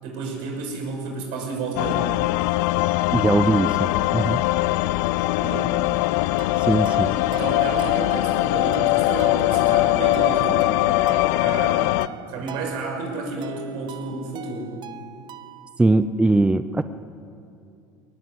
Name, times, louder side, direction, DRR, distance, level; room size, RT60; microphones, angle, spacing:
voice 1, 0.0-2.2 5.3-5.7 7.0-10.7 11.4-14.7, right 3 dB, 65° right, 2 dB, 6.0 m, -31 dB
sound 1, 1.8-12.1, left 19 dB, 70° left, 0.5 m, -21 dB
voice 2, 3.1-4.4 6.6-7.1 15.8-16.8, right 2 dB, 10° right, 12 dB, 0.6 m, -20 dB
sound 2, 6.4-15.8, right 11 dB, 50° right, 0.9 m, -41 dB
21.5 x 18.5 x 7.9 m, 2.6 s
hypercardioid pair, 80°, 10 cm